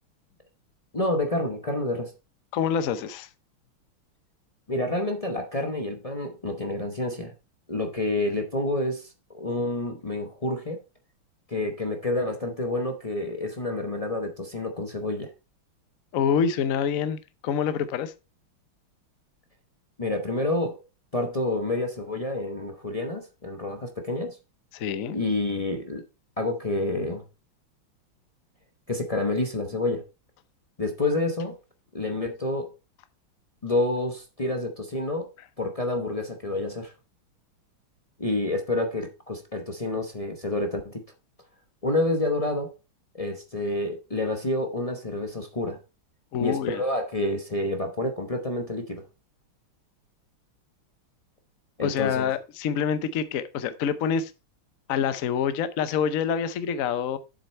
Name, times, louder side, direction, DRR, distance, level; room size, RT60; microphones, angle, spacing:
voice 1, 0.9-2.1 4.7-7.3 7.7-10.8 11.5-15.3 20.0-20.8 21.1-24.4 25.1-26.0 26.4-27.2 28.9-30.1 30.8-31.6 31.9-32.7 33.6-35.3 35.6-36.9 38.2-41.0 41.8-42.7 43.1-45.8 46.4-49.0 51.8-52.3, left 2 dB, 40° left, 0.5 m, -28 dB
voice 2, 2.5-3.3 16.1-18.1 24.7-25.2 46.3-46.8 51.8-54.3 54.9-57.2, left 7 dB, 70° left, 0.7 m, -26 dB
7.9 x 6.7 x 4.3 m
omnidirectional pair, 2.4 m